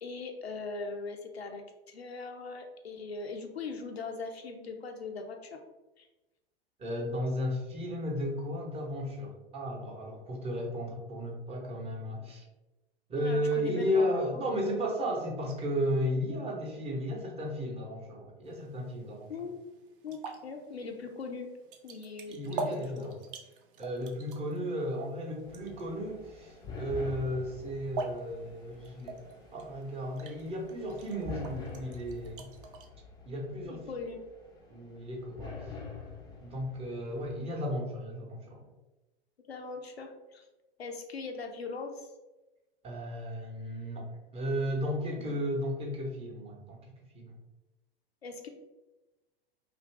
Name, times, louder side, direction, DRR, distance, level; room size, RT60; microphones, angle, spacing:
voice 1, 0.0-5.6 6.0-6.1 13.1-14.5 19.3-19.7 20.0-21.5 21.8-23.2 33.7-34.2 39.5-40.4 40.8-42.1 45.2-45.3 48.2-48.5, left 4 dB, 90° left, 4 dB, 0.5 m, -40 dB
voice 2, 6.8-12.4 13.1-19.3 22.3-23.2 23.8-29.2 29.5-32.5 33.2-33.8 34.7-35.8 36.4-38.7 42.8-46.8 47.1-47.4, equal, 20° right, -2 dB, 0.7 m, -34 dB
sound 1, 18.5-32.9, right 3 dB, 60° right, 0.6 m, -45 dB
sound 2, 25.4-37.4, left 3 dB, 15° left, 0.4 m, -46 dB
2.5 x 2.5 x 3.2 m, 1.1 s
figure-of-eight pair, 95°, 30 cm